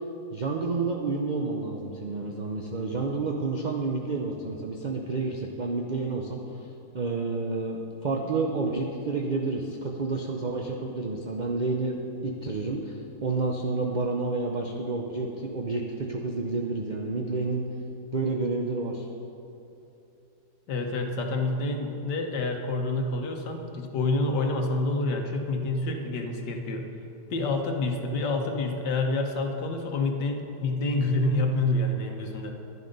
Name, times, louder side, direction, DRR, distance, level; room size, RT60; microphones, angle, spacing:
voice 1, 0.3-6.4 6.9-17.6 18.1-19.1, right 3 dB, 45° right, 0 dB, 0.5 m, -30 dB
voice 2, 20.7-26.9 27.3-32.5, left 2 dB, 80° left, 3 dB, 1.7 m, -28 dB
11.0 x 11.0 x 5.3 m, 2.8 s
omnidirectional pair, 1.8 m